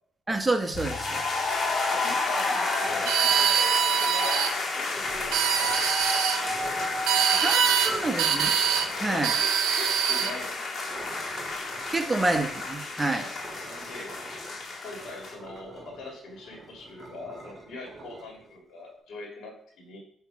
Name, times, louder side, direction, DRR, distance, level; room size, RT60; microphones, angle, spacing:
voice 1, 0.3-1.2 7.4-8.5 9.0-9.3 11.9-13.2, right 2 dB, 20° right, 5 dB, 1.0 m, -27 dB
sound 1, 0.7-15.3, left 3 dB, 50° left, 1.8 m, -31 dB
voice 2, 1.9-6.7 7.1-7.9 9.1-11.0 11.7-12.0 13.1-13.3 13.7-14.3 14.8-20.0, left 2 dB, 80° left, 0 dB, 2.0 m, -43 dB
sound 2, 3.1-4.5 5.2-6.4 7.1-7.9 8.2-8.9 9.2-10.3, right 8 dB, 90° right, 0.6 m, -24 dB
sound 3, 4.9-6.1 6.4-7.1 7.8-10.4 10.9-18.9, right 2 dB, 40° right, 2.6 m, -46 dB
7.8 x 3.1 x 4.7 m, 0.66 s
cardioid pair, 90°, 0 cm